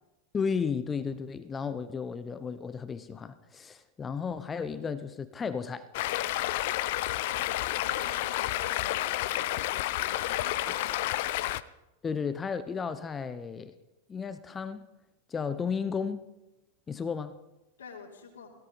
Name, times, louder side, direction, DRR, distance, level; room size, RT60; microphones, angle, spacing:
voice 1, 0.3-5.9 12.0-13.7 14.1-14.8 15.3-16.3 16.9-17.4, left 6 dB, 20° left, 0.7 m, -33 dB
Stream, 5.9-11.6, left 15 dB, 50° left, 0.5 m, -30 dB
voice 2, 7.3-9.7 10.1-11.0 17.8-18.5, left 5 dB, 65° left, 3.1 m, -46 dB
18.0 x 17.0 x 4.1 m
figure-of-eight pair, 90°, 0 cm